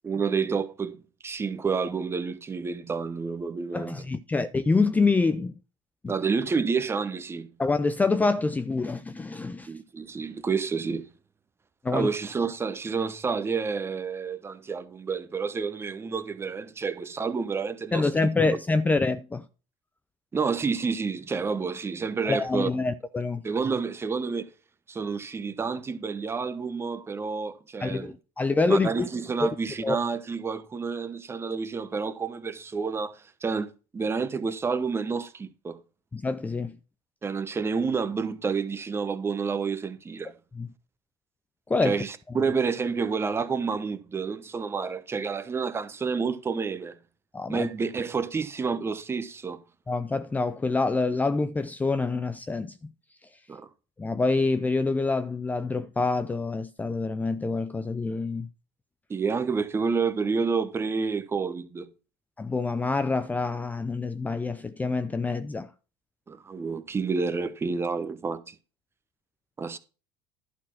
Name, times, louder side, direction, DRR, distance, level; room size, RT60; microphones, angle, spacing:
voice 1, 0.0-4.0 6.1-7.5 9.7-11.1 11.9-18.3 20.3-22.7 23.4-24.5 24.9-28.1 28.7-35.8 37.2-40.3 41.8-47.0 47.5-49.6 53.5-53.7 59.1-61.9 66.3-68.5 69.6-69.8, right 5 dB, 20° right, 0.9 m, -29 dB
voice 2, 3.7-5.5 6.0-6.1 7.6-9.7 11.8-12.1 17.9-19.5 22.2-23.4 27.8-29.1 29.8-30.0 36.1-36.8 40.6-40.7 41.7-42.0 47.3-47.7 49.9-52.8 54.0-58.5 62.4-65.7, left 3 dB, 15° left, 0.5 m, -26 dB
11.5 x 4.3 x 5.9 m
supercardioid pair, 105°, 12 cm